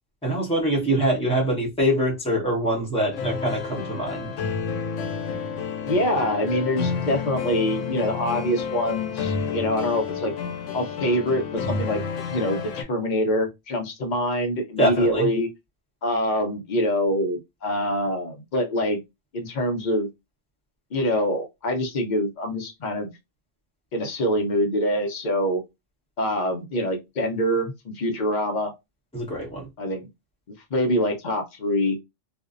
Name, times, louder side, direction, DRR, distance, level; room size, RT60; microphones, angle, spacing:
voice 1, 0.2-4.3 14.8-15.3 29.1-29.7, equal, 5° left, 0.8 m, -24 dB
sound 1, 3.1-12.8, left 5 dB, 80° left, 0.9 m, -30 dB
voice 2, 5.8-10.3 10.7-12.0 12.3-15.5 16.0-19.0 19.3-20.1 20.9-23.1 23.9-25.6 26.2-28.7 29.8-30.1 30.7-32.0, equal, 50° left, 0.6 m, -25 dB
2.5 x 2.1 x 2.4 m
omnidirectional pair, 1.3 m